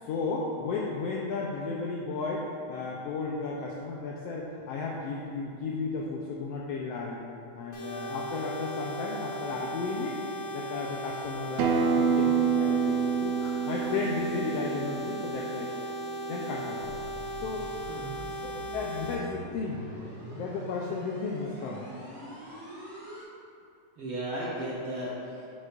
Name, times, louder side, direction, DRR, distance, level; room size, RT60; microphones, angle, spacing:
voice 1, 0.0-7.2 7.5-10.2 10.5-15.8 16.3-16.9 17.4-17.7 18.7-19.8 20.3-21.8, left 4 dB, 85° left, -2 dB, 1.4 m, -34 dB
sound 1, 7.7-19.1, right 1 dB, 65° left, 0.8 m, -37 dB
Acoustic guitar, 11.6-16.8, right 6 dB, 80° right, 1.5 m, -28 dB
sound 2, 16.8-23.2, right 1 dB, 20° right, 0.6 m, -44 dB
voice 2, 17.6-18.2 24.0-25.5, right 1 dB, 65° right, -7 dB, 1.3 m, -36 dB
8.9 x 6.7 x 2.4 m, 2.6 s
omnidirectional pair, 3.4 m